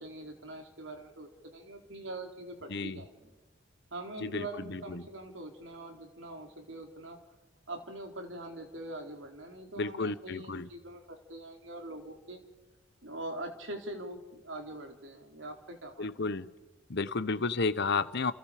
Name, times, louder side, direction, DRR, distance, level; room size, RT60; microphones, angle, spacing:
voice 1, 0.0-3.1 3.9-7.2 7.7-12.4 13.0-16.4, right 1 dB, 65° right, 3 dB, 3.7 m, -43 dB
voice 2, 4.2-5.1 9.8-10.7 16.0-16.5 16.9-18.3, left 3 dB, 55° left, 14 dB, 1.0 m, -32 dB
29.5 x 29.0 x 5.1 m, 1.2 s
head